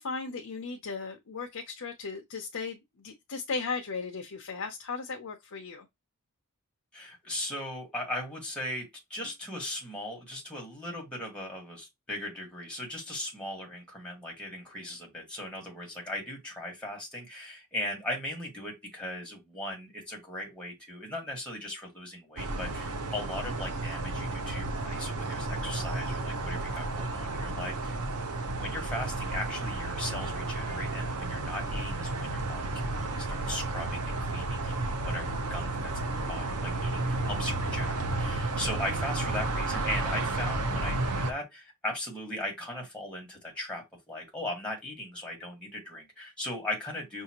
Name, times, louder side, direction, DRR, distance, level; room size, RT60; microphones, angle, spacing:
voice 1, 0.0-5.9, left 4 dB, 65° left, 0.6 m, -36 dB
voice 2, 6.9-28.0 28.6-47.2, left 1 dB, 5° left, 1.4 m, -38 dB
sound 1, 22.4-41.3, right 2 dB, 85° right, 0.8 m, -32 dB
5.6 x 2.7 x 2.8 m
head